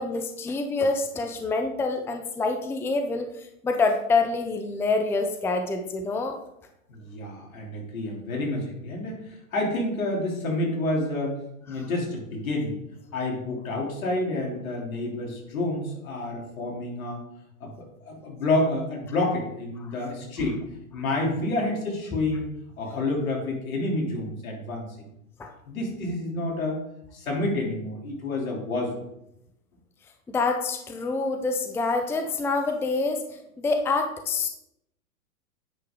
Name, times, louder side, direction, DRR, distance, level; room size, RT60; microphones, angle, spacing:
voice 1, 0.0-3.3 3.6-6.4 25.4-25.5 30.3-33.2 33.6-34.5, left 3 dB, 5° left, 5 dB, 0.5 m, -26 dB
voice 2, 6.9-11.4 11.7-12.7 13.1-17.2 17.6-20.6 20.9-24.9 25.7-26.8 27.1-29.0, left 2 dB, 75° left, -1 dB, 3.3 m, -29 dB
9.9 x 5.5 x 3.8 m, 0.79 s
hypercardioid pair, 110°, 42 cm